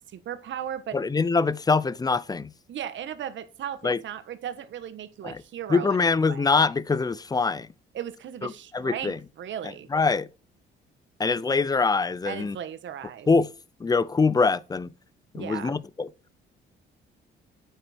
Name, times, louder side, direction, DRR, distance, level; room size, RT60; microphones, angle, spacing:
voice 1, 0.1-1.0 2.7-6.5 7.9-9.9 12.2-13.3 15.3-15.8, right 10 dB, 70° right, 1.4 m, -36 dB
voice 2, 0.9-2.5 3.8-4.0 5.2-5.4 5.7-7.7 8.4-9.2 9.9-10.3 11.2-12.6 13.3-13.5 13.8-14.9 15.3-16.1, left 4 dB, 20° left, 0.5 m, -24 dB
9.3 x 8.0 x 4.5 m
cardioid pair, 90°, 20 cm